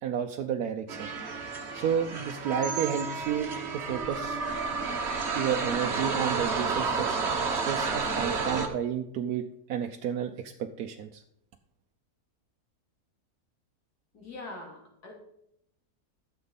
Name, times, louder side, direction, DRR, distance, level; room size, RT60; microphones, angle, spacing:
voice 1, 0.0-1.1 1.7-4.4 5.3-7.2 7.5-11.2, right 8 dB, 75° right, 4 dB, 1.1 m, -31 dB
sound 1, 0.9-8.7, right 4 dB, 45° right, 1.4 m, -31 dB
voice 2, 14.1-15.1, left 2 dB, 80° left, -1 dB, 3.4 m, -43 dB
13.0 x 7.0 x 4.1 m, 0.77 s
omnidirectional pair, 1.7 m